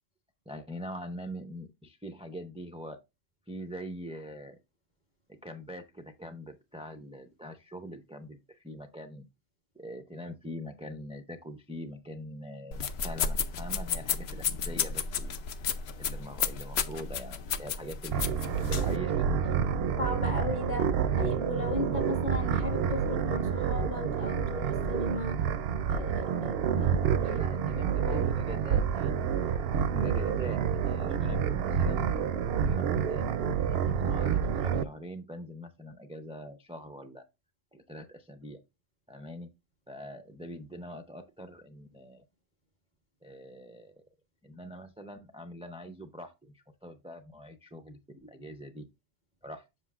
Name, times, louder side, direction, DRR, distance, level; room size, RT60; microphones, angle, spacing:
voice 1, 0.5-3.0 3.5-4.6 5.3-9.2 9.7-15.3 16.0-19.6 27.2-29.3 29.9-33.3 33.6-37.2 37.7-38.6 39.1-39.5 39.9-42.2 43.2-43.9 44.4-48.9 49.4-49.7, equal, 10° right, 0.3 m, -43 dB
sound 1, 12.7-19.0, left 6 dB, 70° left, 0.9 m, -33 dB
sound 2, 18.1-34.8, right 7 dB, 65° right, 0.7 m, -28 dB
voice 2, 20.0-20.9 21.2-25.4 25.9-27.4 27.8-28.2, left 2 dB, 40° left, 2.0 m, -36 dB
7.5 x 6.4 x 2.4 m
omnidirectional pair, 1.2 m